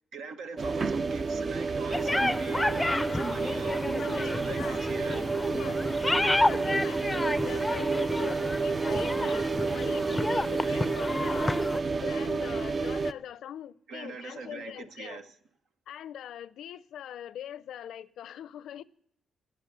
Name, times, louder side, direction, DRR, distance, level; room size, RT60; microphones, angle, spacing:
voice 1, 0.1-5.2 10.6-10.9 13.9-15.3, right 5 dB, 85° right, 1.2 m, -41 dB
sound 1, 0.6-13.1, right 4 dB, 45° right, 0.5 m, -30 dB
sound 2, 1.9-11.8, left 2 dB, 15° left, 0.5 m, -30 dB
voice 2, 3.9-15.2 15.9-18.8, left 10 dB, 80° left, 0.5 m, -43 dB
20.0 x 7.9 x 6.8 m
cardioid pair, 70°, 0 cm